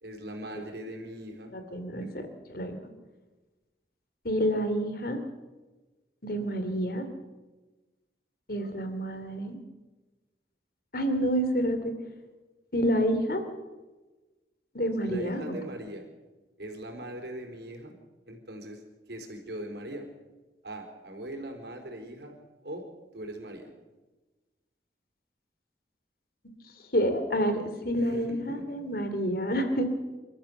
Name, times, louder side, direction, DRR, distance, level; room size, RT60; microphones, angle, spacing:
voice 1, 0.0-1.5 2.0-2.1 15.0-16.0 16.6-18.0 18.3-18.8 19.1-20.1 20.6-22.3 22.6-22.9 23.1-23.7 27.9-28.8, right 1 dB, 70° right, 4 dB, 4.3 m, -40 dB
voice 2, 1.5-2.8 4.2-5.2 6.2-7.1 8.5-9.6 10.9-11.9 12.7-13.4 14.7-15.5 26.9-29.9, equal, 55° left, 8 dB, 2.9 m, -28 dB
29.5 x 13.5 x 6.9 m, 1.2 s
head